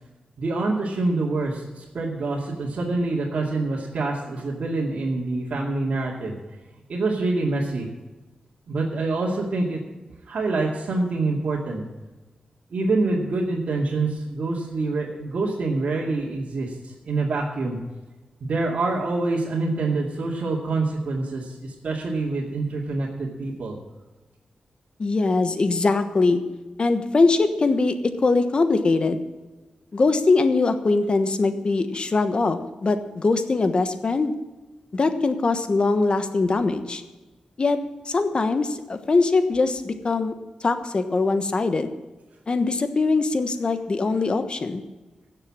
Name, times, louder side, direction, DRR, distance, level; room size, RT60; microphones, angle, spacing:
voice 1, 0.4-6.3 6.9-7.9 8.7-9.8 10.3-11.8 12.7-17.8 18.4-23.7, right 3 dB, 70° right, -5 dB, 2.3 m, -26 dB
voice 2, 25.0-26.4 26.8-29.2 29.9-34.3 34.9-37.0 37.6-37.8 38.0-40.3 40.6-41.9 42.5-44.8, left 3 dB, 45° left, 9 dB, 1.2 m, -22 dB
16.5 x 6.8 x 7.5 m, 1.2 s
wide cardioid pair, 100°, 2 cm